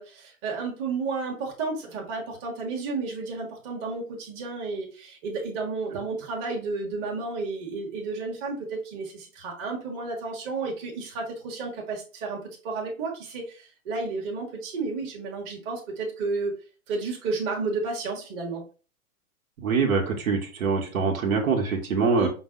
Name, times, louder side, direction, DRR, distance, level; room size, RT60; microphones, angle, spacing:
voice 1, 0.0-16.5 16.9-18.6 22.2-22.3, right 4 dB, 30° right, -1 dB, 1.2 m, -32 dB
voice 2, 19.6-22.3, right 4 dB, 70° right, 1 dB, 1.3 m, -24 dB
5.2 x 2.2 x 3.7 m, 0.36 s
hypercardioid pair, 130°, 43 cm